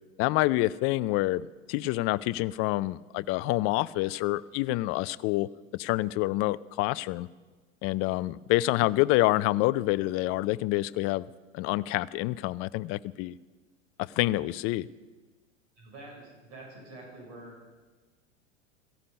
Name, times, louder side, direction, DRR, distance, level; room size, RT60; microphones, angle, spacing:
voice 1, 0.2-7.3 7.8-11.3 11.5-13.4 14.0-14.9, left 18 dB, 35° left, 18 dB, 0.5 m, -27 dB
voice 2, 15.7-17.6, right 2 dB, 55° right, -1 dB, 6.7 m, -46 dB
16.5 x 15.5 x 5.4 m, 1.3 s
hypercardioid pair, 95°, 39 cm